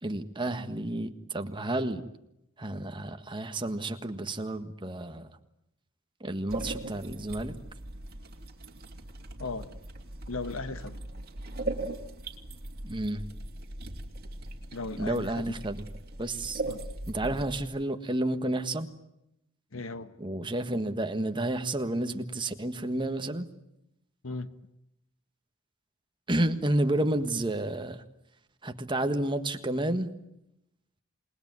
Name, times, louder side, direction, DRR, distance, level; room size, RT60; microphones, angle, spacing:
voice 1, 0.0-2.1 2.6-5.3 6.2-7.5 12.8-13.2 15.0-15.9 16.2-16.6 17.1-18.9 20.2-23.5 26.3-28.0 28.6-30.1, right 1 dB, 25° right, 7 dB, 1.6 m, -30 dB
sound 1, 6.5-17.6, right 2 dB, 50° right, 2.6 m, -39 dB
voice 2, 9.4-9.8 10.3-11.0 14.7-15.4 16.7-16.9 19.7-20.1 20.4-20.5 24.2-24.5, left 3 dB, 75° left, 11 dB, 1.3 m, -37 dB
28.5 x 20.5 x 9.5 m, 0.85 s
head